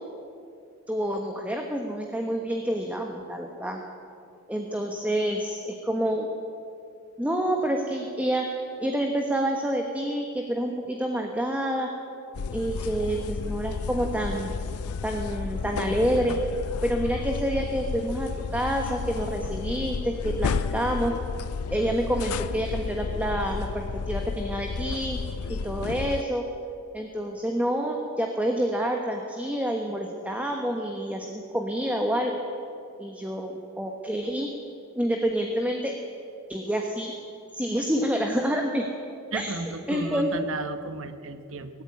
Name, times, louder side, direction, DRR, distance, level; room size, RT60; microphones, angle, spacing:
voice 1, 0.9-3.8 4.5-6.3 7.2-11.9 12.5-14.5 15.0-16.4 16.8-21.2 21.7-25.2 25.5-26.5 26.9-32.4 33.0-34.5 34.9-35.9 36.5-37.1 37.5-38.9 39.3-39.5 39.9-40.5, equal, 5° right, 2 dB, 1.2 m, -28 dB
sound 1, 12.3-26.2, left 5 dB, 90° left, 0.5 m, -32 dB
voice 2, 39.3-41.8, right 3 dB, 65° right, 10 dB, 1.2 m, -34 dB
18.0 x 15.0 x 9.6 m, 2.5 s
head